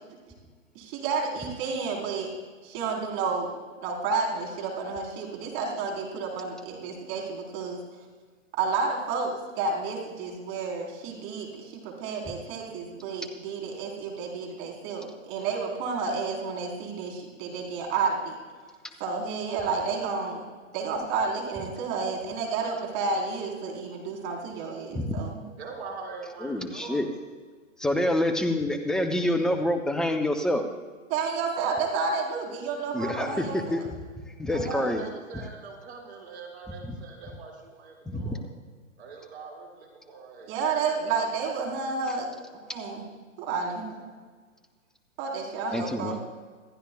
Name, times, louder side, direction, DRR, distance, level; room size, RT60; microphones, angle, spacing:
voice 1, 0.7-2.3 2.6-7.8 8.6-18.4 19.0-20.4 20.7-25.4 31.1-33.9 34.5-34.9 40.5-42.3 42.7-43.1 43.4-44.0 45.2-46.2, right 4 dB, 35° right, 0 dB, 3.9 m, -31 dB
voice 2, 24.9-25.2 26.4-27.1 27.8-30.6 32.9-33.5 33.7-33.8 34.4-35.0 38.1-38.4 45.7-46.2, left 1 dB, ahead, 6 dB, 0.6 m, -27 dB
voice 3, 25.6-27.0 34.7-38.4 39.0-40.6, right 4 dB, 55° right, -1 dB, 5.4 m, -42 dB
26.5 x 15.0 x 2.3 m, 1.5 s
hypercardioid pair, 135°, 39 cm